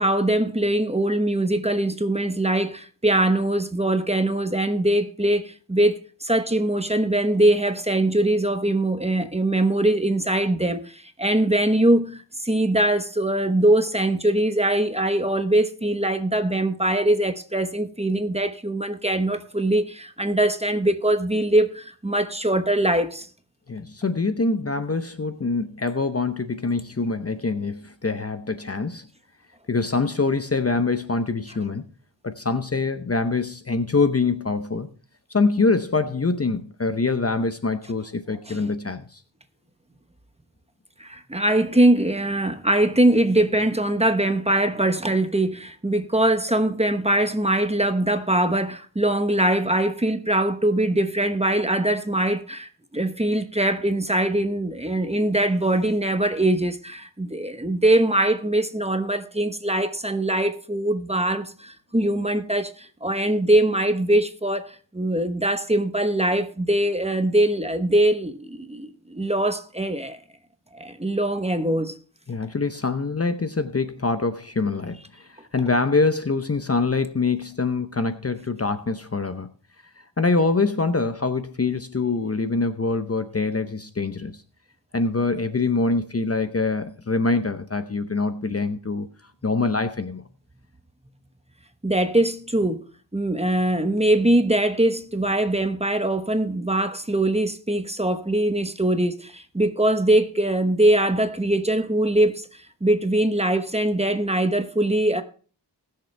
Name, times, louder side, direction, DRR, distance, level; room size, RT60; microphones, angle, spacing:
voice 1, 0.0-23.3 38.5-38.7 41.0-70.2 70.7-72.0 91.8-92.8 93.1-105.2, right 1 dB, 15° right, 0.9 m, -22 dB
voice 2, 23.7-29.0 29.7-31.9 32.2-34.9 35.3-39.2 72.3-79.5 80.2-84.4 84.9-89.1 89.4-90.2, left 3 dB, 35° left, 0.7 m, -24 dB
20.0 x 6.7 x 3.3 m
wide cardioid pair, 90°, 45 cm